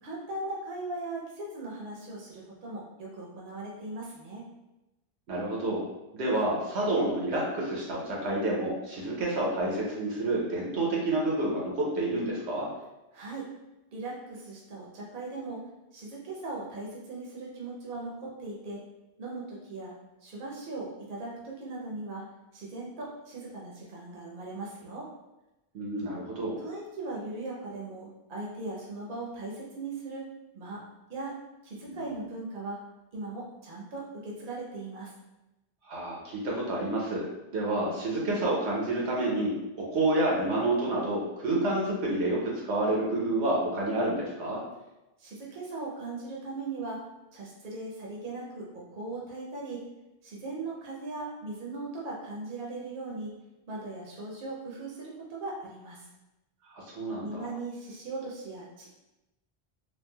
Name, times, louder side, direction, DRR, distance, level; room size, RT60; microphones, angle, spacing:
voice 1, 0.0-4.4 13.1-13.5 13.9-15.6 15.9-18.8 19.2-19.9 20.2-22.2 22.5-25.1 26.6-30.2 30.5-30.8 31.1-31.3 31.6-32.8 33.1-35.1 45.2-47.0 47.3-49.8 50.2-53.3 53.7-56.1 57.2-58.9, right 2 dB, 55° right, -4 dB, 0.8 m, -39 dB
voice 2, 5.3-5.8 6.1-12.7 25.7-26.6 31.8-32.1 35.9-37.2 37.5-39.5 39.9-44.6 56.7-57.5, right 2 dB, 85° right, -3 dB, 1.0 m, -29 dB
3.1 x 2.3 x 2.2 m, 0.98 s
omnidirectional pair, 1.1 m